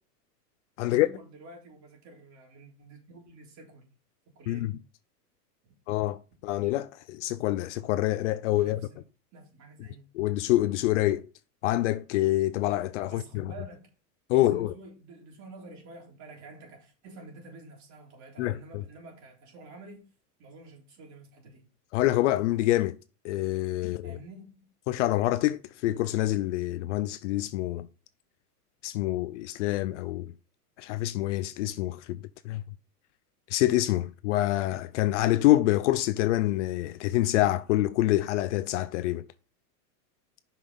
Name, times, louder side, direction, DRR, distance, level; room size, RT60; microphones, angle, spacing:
voice 1, 0.8-3.9 4.4-4.7 8.6-9.0 9.3-10.1 13.1-13.9 14.3-20.0 20.4-21.7 24.0-24.7, right 2 dB, 35° right, 3.6 m, -49 dB
voice 2, 5.9-8.8 10.1-11.2 11.6-13.5 14.3-14.7 18.4-18.6 21.9-22.9 23.2-24.2 24.9-27.9 28.8-30.3 30.8-32.2 32.4-32.6 33.5-39.2, left 15 dB, 50° left, 0.5 m, -26 dB
6.1 x 5.6 x 5.2 m
supercardioid pair, 140°, 47 cm